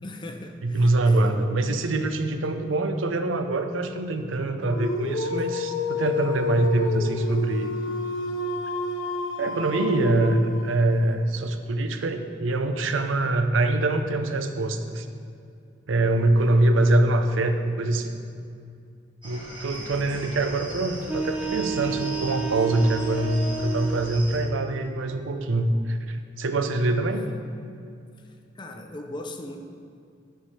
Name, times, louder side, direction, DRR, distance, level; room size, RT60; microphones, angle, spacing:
voice 1, 0.0-1.5 5.4-5.5 16.4-16.7 19.7-20.3 27.3-27.4 28.2-29.6, left 1 dB, 25° left, 4 dB, 0.5 m, -40 dB
voice 2, 0.6-7.7 9.4-15.1 15.9-18.2 19.2-27.3, right 2 dB, 85° right, 7 dB, 0.6 m, -24 dB
Dog, 4.6-11.0, left 3 dB, 75° left, 0.6 m, -29 dB
sound 1, 19.2-24.4, right 1 dB, 25° right, 1.7 m, -40 dB
sound 2, 21.0-24.0, right 4 dB, 10° right, 0.8 m, -30 dB
9.9 x 3.5 x 5.6 m, 2.5 s
head